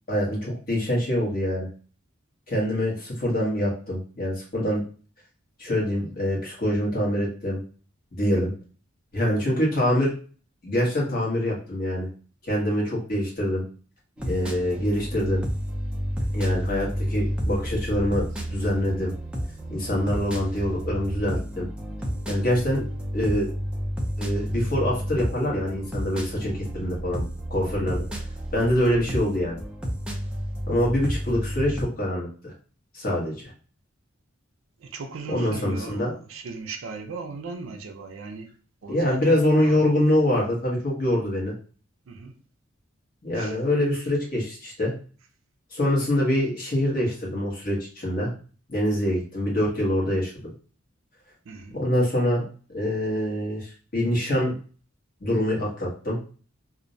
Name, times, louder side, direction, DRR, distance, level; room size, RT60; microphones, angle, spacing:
voice 1, 0.1-1.7 2.5-4.8 5.6-7.6 8.1-8.5 9.1-10.1 10.6-12.1 12.4-13.6 14.2-15.4 16.3-19.1 19.7-21.7 22.3-22.8 23.1-23.5 24.2-27.2 27.5-28.0 28.5-29.6 30.7-32.5 32.9-33.5 35.3-36.1 38.9-41.5 43.2-44.9 45.7-48.3 48.7-50.3 51.7-52.4 52.7-54.5 55.2-56.2, left 1 dB, 45° left, 1.0 m, -25 dB
sound 1, 14.2-31.8, equal, 5° right, 0.4 m, -31 dB
voice 2, 34.8-38.5 38.8-39.9 42.1-42.3 43.3-43.6 51.4-51.8, right 4 dB, 80° right, 0.4 m, -38 dB
2.5 x 2.0 x 2.6 m
head